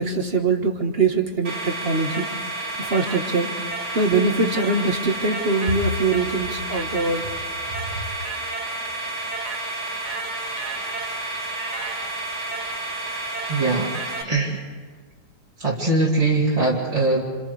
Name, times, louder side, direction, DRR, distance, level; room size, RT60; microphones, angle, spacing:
voice 1, 0.0-2.3 2.8-3.5 3.9-7.2, right 3 dB, 35° right, 3 dB, 1.6 m, -22 dB
sound 1, 1.4-14.2, right 2 dB, 65° right, 2.9 m, -30 dB
voice 2, 13.5-13.9 14.2-14.6 15.6-17.2, right 2 dB, 20° right, -7 dB, 2.7 m, -21 dB
29.0 x 28.0 x 3.4 m, 1.5 s
omnidirectional pair, 1.9 m